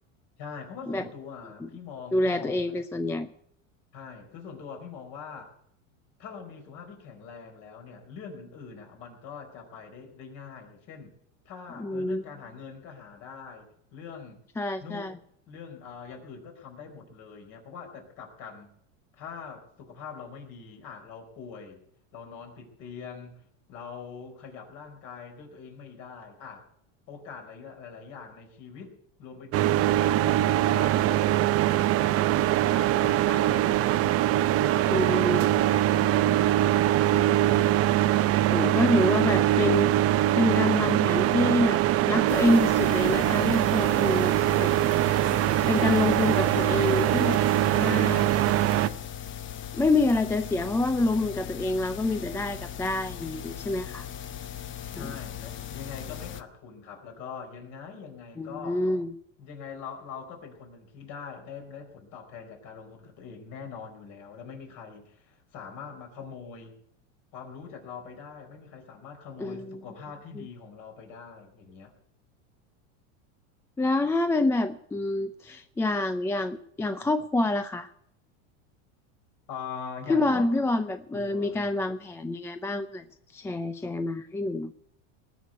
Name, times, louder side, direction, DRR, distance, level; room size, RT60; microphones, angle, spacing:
voice 1, 0.4-2.8 3.9-5.5 6.2-11.1 11.4-14.4 14.8-15.1 15.5-18.7 19.1-21.8 22.1-23.4 23.7-26.6 27.1-32.2 32.7-36.0 54.9-58.8 59.4-66.7 67.3-71.9 79.5-80.5 81.1-81.6, left 6 dB, 55° left, 4 dB, 4.6 m, -43 dB
voice 2, 2.1-3.3 11.8-12.2 14.6-15.2 34.9-35.6 35.9-36.4 37.1-37.3 38.5-40.1 40.4-41.8 42.1-44.3 44.6-44.7 45.7-47.4 47.7-48.3 49.7-54.1 55.0-55.1 58.4-59.1 69.4-69.8 70.4-70.5 73.8-77.9 80.1-83.0 83.3-84.7, left 2 dB, 5° left, 10 dB, 0.4 m, -27 dB
sound 1, 29.5-48.9, right 13 dB, 35° right, 0.7 m, -23 dB
sound 2, 42.3-56.4, left 10 dB, 30° left, 0.9 m, -39 dB
19.5 x 6.7 x 7.9 m, 0.68 s
supercardioid pair, 125°, 38 cm